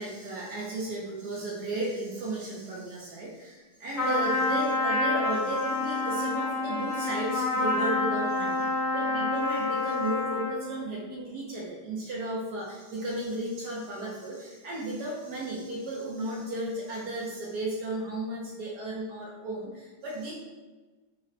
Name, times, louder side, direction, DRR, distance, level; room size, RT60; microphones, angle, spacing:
voice 1, 0.0-20.3, right 2 dB, 70° right, -4 dB, 1.0 m, -34 dB
Trumpet, 3.9-10.6, left 2 dB, 45° left, 0.9 m, -28 dB
4.0 x 2.1 x 4.0 m, 1.2 s
omnidirectional pair, 2.3 m